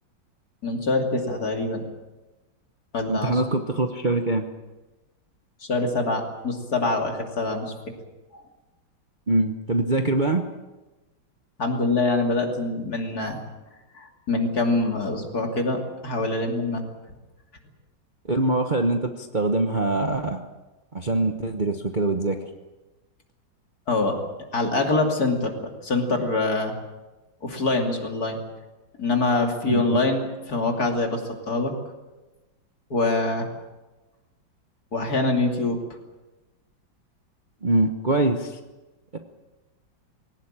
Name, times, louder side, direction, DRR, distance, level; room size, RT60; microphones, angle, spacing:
voice 1, 0.6-1.8 2.9-3.4 5.6-7.7 8.3-8.4 11.6-13.4 13.9-16.8 23.9-24.2 24.5-26.7 27.4-28.4 29.0-31.2 31.5-31.7 32.9-33.5 34.9-35.8, left 2 dB, 50° left, 3 dB, 3.2 m, -24 dB
voice 2, 3.1-4.4 9.3-10.4 18.3-20.4 20.9-22.5 29.6-30.0 37.6-38.6 39.1-39.2, right 2 dB, 30° right, 5 dB, 1.0 m, -23 dB
21.0 x 18.0 x 8.9 m, 1.1 s
omnidirectional pair, 2.1 m